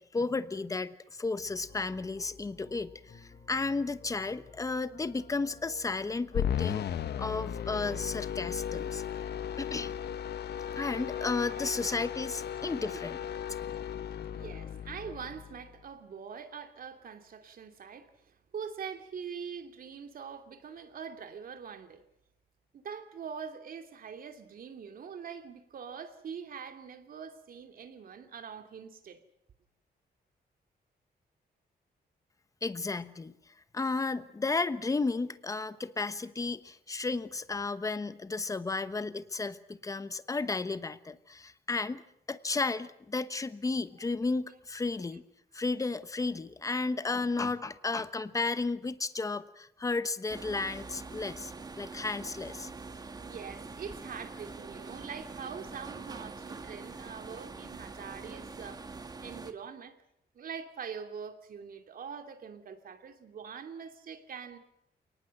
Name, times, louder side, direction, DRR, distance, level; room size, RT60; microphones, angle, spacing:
voice 1, 0.0-6.9 7.2-9.0 9.6-9.9 10.8-13.2 32.6-33.3 33.7-42.0 42.3-45.2 45.5-52.7, left 3 dB, 20° left, 1.1 m, -33 dB
sound 1, 1.4-15.5, left 4 dB, 50° left, 5.4 m, -55 dB
sound 2, 6.3-15.7, left 9 dB, 80° left, 1.2 m, -36 dB
voice 2, 11.1-12.0 12.9-13.0 14.3-18.1 18.5-22.0 22.7-29.2 53.2-58.9 59.2-59.9 60.3-64.6, right 6 dB, 60° right, 2.8 m, -43 dB
sound 3, 50.3-59.5, right 3 dB, 25° right, 1.5 m, -44 dB
29.0 x 19.0 x 7.8 m
wide cardioid pair, 160°, 17 cm